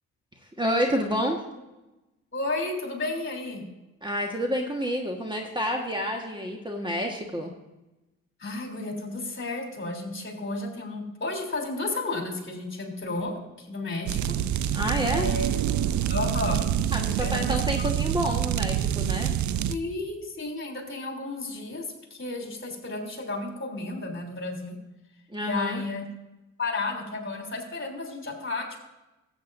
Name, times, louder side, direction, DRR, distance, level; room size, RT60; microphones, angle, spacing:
voice 1, 0.6-1.4 4.0-7.5 14.7-15.3 16.9-19.3 25.3-25.8, equal, 15° right, 1 dB, 1.4 m, -29 dB
voice 2, 2.3-3.6 8.4-14.3 15.1-15.5 16.1-16.6 17.2-17.9 19.7-24.7 25.4-26.0 26.6-28.8, left 2 dB, 35° left, 1 dB, 3.3 m, -32 dB
sound 1, 14.1-19.7, right 10 dB, 60° right, 0.5 m, -26 dB
13.5 x 8.5 x 2.6 m, 1.0 s
supercardioid pair, 65°, 33 cm